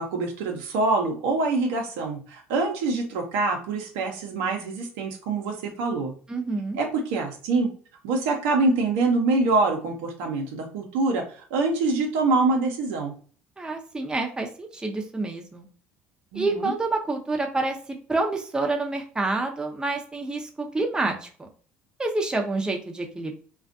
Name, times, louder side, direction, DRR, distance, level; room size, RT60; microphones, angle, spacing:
voice 1, 0.0-6.1 6.8-7.7 8.0-11.2 11.5-13.1 16.3-16.7, right 3 dB, 80° right, 2 dB, 0.7 m, -25 dB
voice 2, 6.3-6.8 13.6-15.7 16.3-17.8 18.1-21.5 22.0-23.3, right 2 dB, 15° right, 2 dB, 0.6 m, -28 dB
2.4 x 2.3 x 2.5 m, 0.41 s
hypercardioid pair, 75°, 6 cm